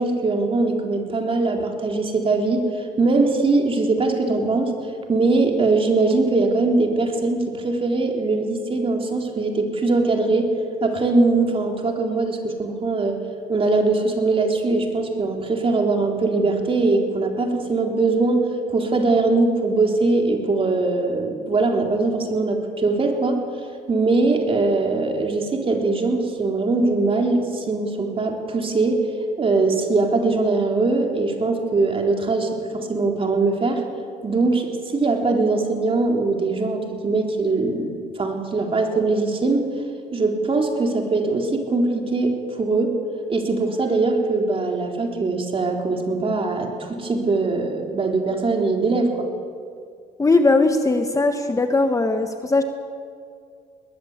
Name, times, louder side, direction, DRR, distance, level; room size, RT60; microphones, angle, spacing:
voice 1, 0.0-2.7 3.0-4.8 5.1-10.5 10.8-13.2 13.5-23.4 23.9-29.1 29.4-33.8 34.2-39.8 40.1-43.0 43.3-49.3, right 3 dB, 35° right, 2 dB, 3.9 m, -21 dB
voice 2, 50.2-52.6, left 3 dB, 20° left, 6 dB, 1.4 m, -19 dB
21.5 x 19.5 x 8.3 m, 2.3 s
cardioid pair, 100°, 17 cm